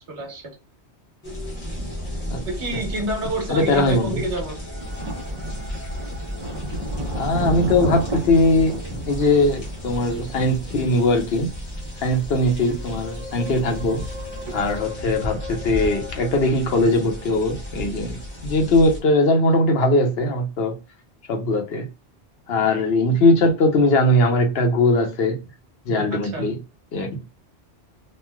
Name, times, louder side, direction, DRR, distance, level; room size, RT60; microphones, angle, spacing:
voice 1, 0.1-0.5 2.5-4.6 26.1-26.4, right 2 dB, 80° right, 2 dB, 1.3 m, -28 dB
sound 1, 1.2-19.0, left 1 dB, 35° left, 1.0 m, -33 dB
voice 2, 3.5-4.2 7.1-11.5 12.0-14.0 14.5-18.2 18.4-20.7 21.3-21.9 22.5-25.4 25.9-26.6 26.9-27.2, left 2 dB, 65° left, 4 dB, 1.0 m, -20 dB
Thunder, 4.8-14.8, right 1 dB, 30° right, 0.8 m, -34 dB
3.1 x 2.6 x 2.2 m, 0.28 s
omnidirectional pair, 1.1 m